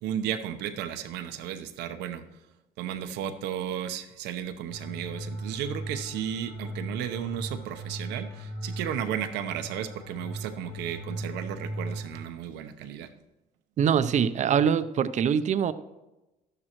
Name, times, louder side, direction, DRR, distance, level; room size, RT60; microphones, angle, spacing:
voice 1, 0.0-2.2 2.8-13.1, right 9 dB, 90° right, 8 dB, 0.9 m, -34 dB
sound 1, 4.7-12.1, right 1 dB, 85° left, 3.9 m, -38 dB
voice 2, 13.8-15.7, right 8 dB, 45° right, 13 dB, 0.6 m, -23 dB
12.5 x 10.5 x 3.0 m, 1.0 s
cardioid pair, 110°, 17 cm